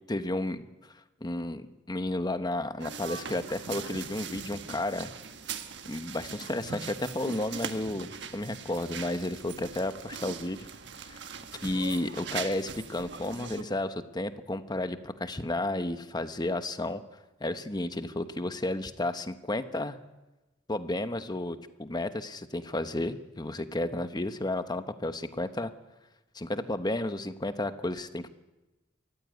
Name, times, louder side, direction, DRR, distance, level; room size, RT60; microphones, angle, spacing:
voice 1, 0.1-0.7 1.2-5.1 5.8-10.7 11.0-11.2 11.6-17.0 17.4-20.0 20.7-25.7 26.3-28.3, left 1 dB, 20° left, 10 dB, 1.1 m, -32 dB
sound 1, 2.8-13.6, right 6 dB, 65° right, 1.4 m, -41 dB
24.0 x 14.5 x 9.4 m, 1.1 s
head